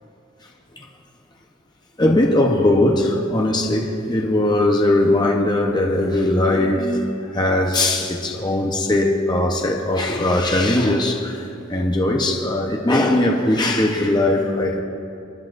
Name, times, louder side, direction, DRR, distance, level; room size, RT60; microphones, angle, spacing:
voice 1, 2.0-14.8, left 1 dB, 20° left, 0 dB, 1.0 m, -19 dB
27.0 x 11.5 x 2.6 m, 2.7 s
head